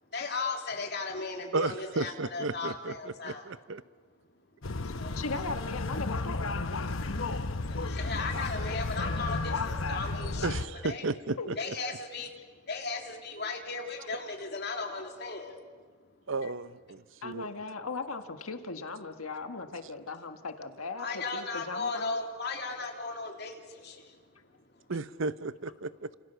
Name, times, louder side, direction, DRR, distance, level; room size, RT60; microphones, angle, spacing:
voice 1, 0.1-3.5 4.9-5.2 6.9-11.0 11.6-15.7 21.0-24.2 24.7-24.9, left 4 dB, 50° left, 2 dB, 3.3 m, -37 dB
voice 2, 1.5-2.9 3.2-3.8 8.0-8.1 10.4-11.5 16.3-17.5 24.9-26.1, right 3 dB, 65° right, 15 dB, 0.8 m, -33 dB
sound 1, 4.6-10.6, left 3 dB, 70° left, 1.1 m, -33 dB
voice 3, 4.8-6.7 11.4-11.6 14.0-14.1 16.4-16.5 17.2-22.1, left 3 dB, 90° left, 7 dB, 1.7 m, -38 dB
29.5 x 27.5 x 6.9 m, 1.5 s
head